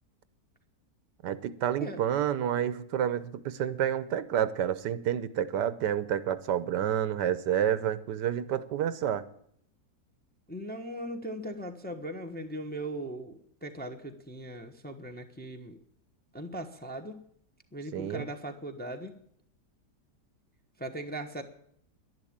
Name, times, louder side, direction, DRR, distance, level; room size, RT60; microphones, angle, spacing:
voice 1, 1.2-9.3 17.9-18.3, right 10 dB, 80° right, 15 dB, 1.4 m, -29 dB
voice 2, 10.5-15.8 16.3-17.2 17.7-19.2 20.8-21.4, right 1 dB, 5° left, 4 dB, 0.9 m, -39 dB
11.0 x 11.0 x 8.7 m, 0.67 s
omnidirectional pair, 1.8 m